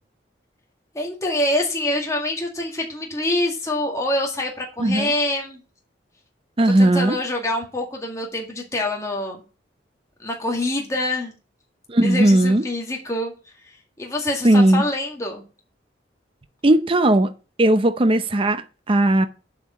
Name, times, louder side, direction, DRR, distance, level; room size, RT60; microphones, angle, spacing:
voice 1, 0.9-5.6 6.8-9.4 10.2-11.3 12.0-13.3 14.0-15.4, left 1 dB, 15° left, 1.9 m, -25 dB
voice 2, 4.8-5.1 6.6-7.2 11.9-12.6 14.4-14.8 16.6-17.3 17.6-19.3, right 1 dB, 30° right, 0.6 m, -17 dB
8.1 x 5.0 x 7.5 m
head